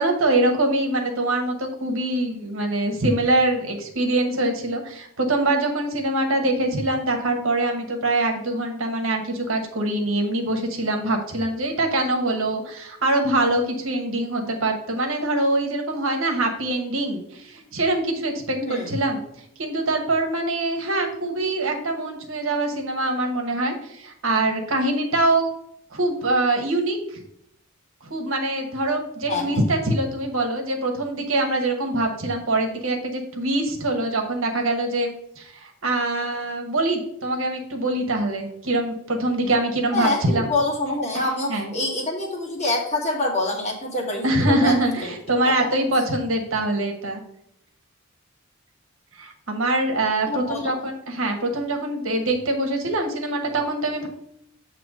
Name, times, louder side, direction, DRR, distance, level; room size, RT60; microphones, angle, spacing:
voice 1, 0.0-19.2 19.6-25.5 25.9-27.2 28.0-35.1 35.4-40.5 41.1-41.2 41.5-41.7 44.2-47.2 49.1-54.1, right 2 dB, 65° right, 3 dB, 1.2 m, -24 dB
voice 2, 18.6-18.9 29.3-29.6 39.9-45.0 45.4-45.7 50.3-50.7, left 2 dB, 30° left, -1 dB, 1.6 m, -26 dB
7.7 x 3.0 x 6.2 m, 0.73 s
head